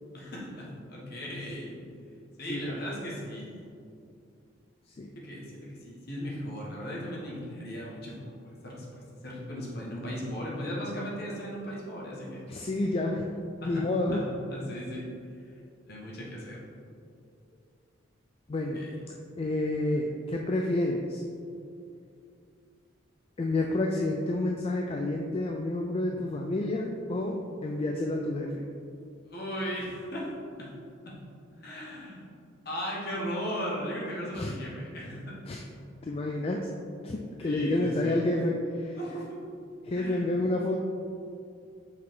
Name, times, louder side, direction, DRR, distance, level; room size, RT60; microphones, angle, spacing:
voice 1, 0.1-1.8 2.4-3.6 5.1-12.4 13.6-15.1 15.8-16.6 18.7-19.0 26.1-26.2 29.3-30.3 30.6-30.7 31.0-31.2 31.6-32.2 32.6-35.6 37.4-38.3 39.0-39.4 39.9-40.3, equal, 50° left, -4 dB, 1.3 m, -37 dB
voice 2, 2.5-3.0 5.0-5.1 12.5-13.3 13.7-14.2 18.5-18.9 19.4-21.2 23.4-28.7 34.4-34.5 35.5-35.6 36.0-36.7 37.0-39.0 39.8-40.8, left 2 dB, 30° left, 1 dB, 0.3 m, -29 dB
6.2 x 4.8 x 3.7 m, 2.4 s
head